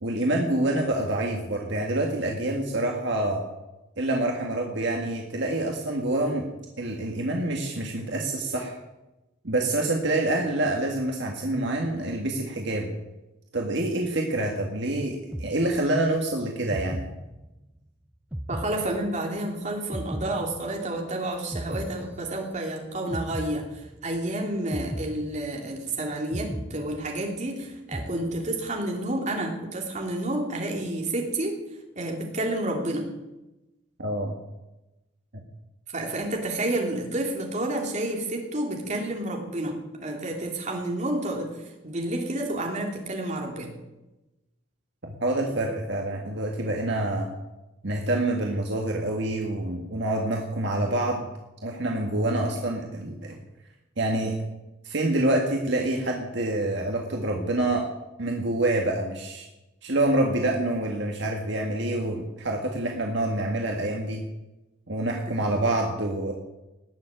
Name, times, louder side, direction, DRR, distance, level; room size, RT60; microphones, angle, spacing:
voice 1, 0.0-3.4 4.0-6.5 6.8-8.8 9.4-12.9 13.5-17.0 34.0-34.4 45.0-47.3 47.8-51.3 51.6-53.4 54.0-54.3 54.8-57.9 58.2-59.5 59.8-64.2 64.9-66.3, right 1 dB, 60° right, 1 dB, 1.9 m, -27 dB
sound 1, 15.3-16.2 16.7-17.8 18.3-19.5 19.9-21.1 21.5-22.7 23.1-24.2 24.7-25.9 26.3-27.5 27.9-28.8, equal, 10° right, 0.6 m, -37 dB
voice 2, 18.5-31.5 31.9-33.0 35.9-39.8 40.0-43.7, right 1 dB, 35° right, 0 dB, 3.3 m, -30 dB
19.0 x 7.3 x 9.1 m, 1.0 s
head